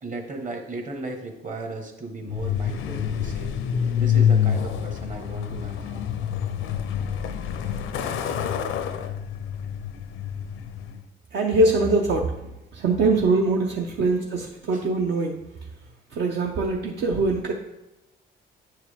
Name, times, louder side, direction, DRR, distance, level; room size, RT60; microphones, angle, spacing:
voice 1, 0.0-3.6 4.0-6.1 14.0-14.1 14.7-14.9, right 2 dB, 40° right, 3 dB, 1.3 m, -36 dB
Truck, 2.3-11.0, left 8 dB, 85° left, 0.5 m, -26 dB
voice 2, 11.3-12.3 12.7-14.2 14.7-15.3 16.1-17.5, right 2 dB, 65° right, 1 dB, 0.7 m, -22 dB
9.1 x 4.6 x 3.5 m, 0.95 s
cardioid pair, 90°, 20 cm